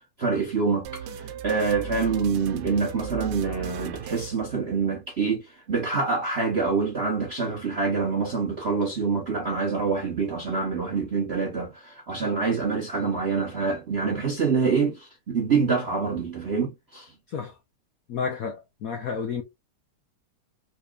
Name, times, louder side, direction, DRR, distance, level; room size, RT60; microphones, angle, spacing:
voice 1, 0.2-17.1, right 5 dB, 55° right, 0.7 m, -26 dB
sound 1, 0.8-5.2, right 8 dB, 85° right, 1.5 m, -38 dB
voice 2, 18.1-19.4, left 6 dB, 75° left, 0.8 m, -31 dB
4.0 x 3.4 x 2.3 m
omnidirectional pair, 2.3 m